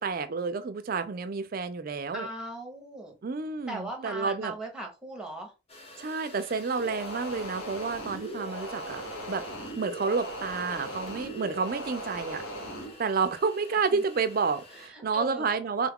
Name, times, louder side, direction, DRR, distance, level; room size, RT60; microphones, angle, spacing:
voice 1, 0.0-2.3 3.2-4.5 6.0-9.0 9.3-9.4 9.8-12.4 13.0-15.9, right 5 dB, 45° right, 0.4 m, -30 dB
voice 2, 2.1-3.2 3.7-5.5 12.6-13.2 13.9-14.0 14.7-15.5, right 1 dB, 5° right, 0.7 m, -39 dB
sound 1, 5.7-14.9, left 2 dB, 30° left, 0.6 m, -50 dB
sound 2, 6.8-12.9, right 1 dB, 80° left, 1.1 m, -38 dB
3.4 x 2.3 x 3.5 m
head